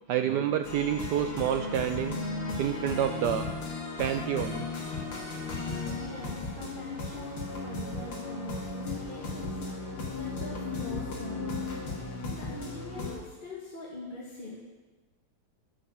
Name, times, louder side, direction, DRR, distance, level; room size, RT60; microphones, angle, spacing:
voice 1, 0.1-2.2 2.6-3.5 4.0-4.7, right 10 dB, 80° right, 8 dB, 0.9 m, -28 dB
sound 1, 0.6-13.2, left 3 dB, 85° left, 3.1 m, -35 dB
voice 2, 5.6-9.6 10.1-11.8 12.1-14.6, left 1 dB, 25° left, -5 dB, 1.8 m, -43 dB
11.0 x 10.0 x 6.2 m, 1.2 s
omnidirectional pair, 2.3 m